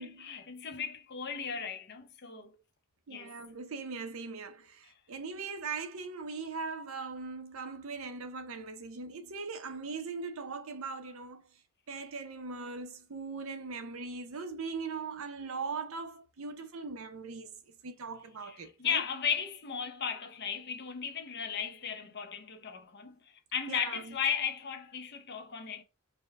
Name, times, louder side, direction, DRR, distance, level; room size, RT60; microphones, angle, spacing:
voice 1, 0.0-2.5 3.1-3.3 18.4-23.2 23.5-25.8, left 7 dB, 50° left, 0.7 m, -36 dB
voice 2, 3.1-11.4 11.9-17.5 17.8-19.0 23.7-24.1, right 4 dB, 70° right, 0.6 m, -40 dB
5.2 x 2.1 x 3.3 m
head